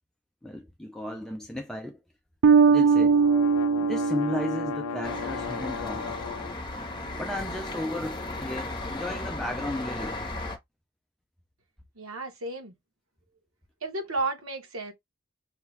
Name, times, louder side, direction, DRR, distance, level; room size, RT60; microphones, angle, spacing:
voice 1, 0.4-2.0 2.7-3.2 3.8-6.2 7.1-10.2, left 1 dB, ahead, 0.4 m, -35 dB
Bass guitar, 2.4-5.5, right 5 dB, 70° right, 0.3 m, -21 dB
sound 1, 2.6-6.5, left 8 dB, 70° left, 0.3 m, -36 dB
sound 2, 5.0-10.6, left 2 dB, 25° left, 0.9 m, -35 dB
voice 2, 11.9-12.7 13.8-14.9, right 3 dB, 85° right, 1.3 m, -32 dB
5.6 x 2.3 x 3.2 m
head